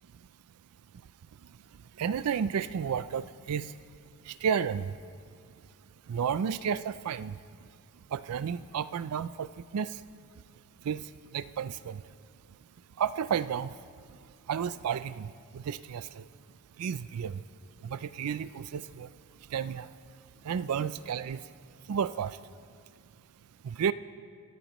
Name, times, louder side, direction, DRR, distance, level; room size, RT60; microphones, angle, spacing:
voice 1, 2.0-3.7 4.3-4.9 6.1-7.4 8.1-9.5 9.7-9.9 10.9-11.0 11.3-12.0 13.0-13.7 14.5-16.2 16.8-17.3 17.8-19.1 19.5-19.9 20.4-21.4 21.9-22.4 23.6-23.9, right 7 dB, 75° right, 14 dB, 0.4 m, -32 dB
27.0 x 14.0 x 3.0 m, 2.2 s
head